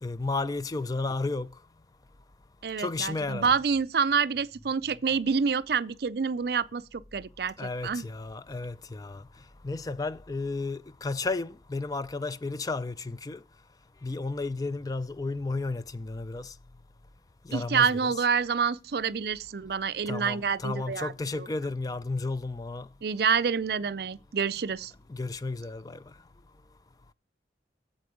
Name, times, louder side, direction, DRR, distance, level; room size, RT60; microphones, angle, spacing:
voice 1, 0.0-1.5 2.8-3.5 7.6-9.2 9.6-13.4 14.0-16.5 17.5-18.2 20.1-22.9 25.1-26.0, left 3 dB, 20° left, 0.4 m, -33 dB
voice 2, 2.6-8.0 17.5-21.5 23.0-24.9, right 6 dB, 60° right, 0.5 m, -28 dB
8.1 x 7.7 x 5.0 m
head